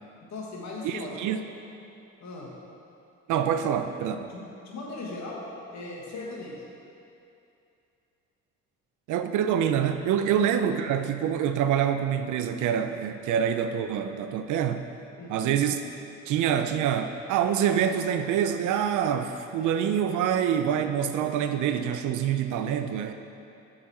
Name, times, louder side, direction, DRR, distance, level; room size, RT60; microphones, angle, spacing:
voice 1, 0.3-1.3 2.2-2.5 4.3-5.4 5.7-6.6 10.3-10.4 15.2-15.5, left 3 dB, 65° left, -3 dB, 1.5 m, -38 dB
voice 2, 0.8-1.4 3.3-4.3 9.1-14.9 15.3-15.8 16.3-23.1, right 9 dB, 80° right, 8 dB, 0.5 m, -26 dB
9.7 x 4.0 x 4.2 m, 2.7 s
cardioid pair, 90°, 30 cm